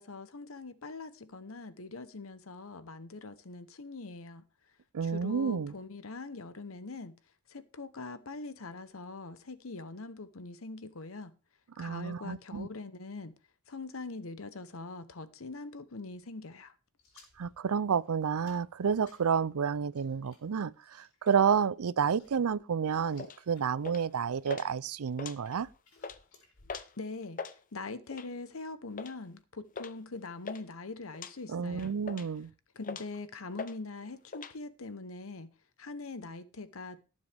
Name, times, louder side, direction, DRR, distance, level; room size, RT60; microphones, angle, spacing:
voice 1, 0.0-4.4 5.0-7.2 7.5-11.3 11.8-13.3 13.7-16.7 27.0-27.5 27.7-31.9 32.8-35.5 35.8-37.0, left 3 dB, 65° left, 1.0 m, -43 dB
voice 2, 4.9-5.7 11.8-12.7 17.4-25.7 31.5-32.5, right 6 dB, 85° right, 0.5 m, -30 dB
sound 1, 17.0-23.7 24.0-24.5 25.1-26.9, left 3 dB, 85° left, 4.6 m, -62 dB
sound 2, 23.2-23.4 23.8-24.1 24.5-24.7 25.1-25.7 26.0-26.2 26.7-26.9 27.2-27.6 28.1-28.4 29.0-29.2 29.8-29.9 30.2-30.6 31.1-31.3 31.8-32.4 32.8-33.2 33.6-33.8 34.0-34.5, left 5 dB, 40° left, 0.7 m, -41 dB
18.0 x 7.4 x 3.5 m
head